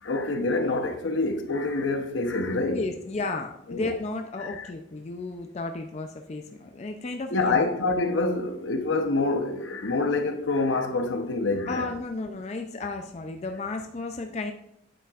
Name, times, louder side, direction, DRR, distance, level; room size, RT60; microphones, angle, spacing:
voice 1, 0.0-2.8 3.7-3.9 4.4-4.7 7.3-11.9, left 3 dB, 75° left, 0.8 m, -26 dB
voice 2, 2.7-7.6 11.7-14.5, left 3 dB, 35° left, 0.4 m, -33 dB
9.0 x 7.4 x 2.4 m
head